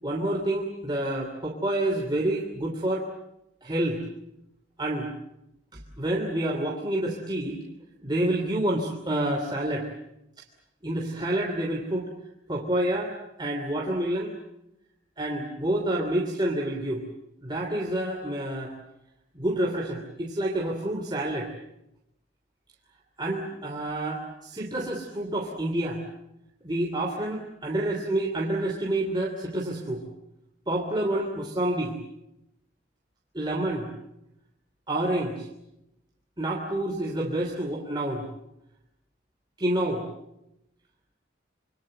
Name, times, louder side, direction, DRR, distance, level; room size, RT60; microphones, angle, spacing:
voice 1, 0.0-3.1 3.6-4.0 4.8-5.1 5.7-7.6 8.0-9.9 10.8-12.1 12.5-14.4 15.2-17.0 17.4-18.7 19.3-21.5 23.2-26.0 26.6-30.0 30.7-31.9 33.3-33.9 34.9-35.5 36.4-38.3 39.6-40.1, right 1 dB, 25° right, -1 dB, 3.0 m, -28 dB
27.0 x 25.0 x 7.8 m, 0.86 s
head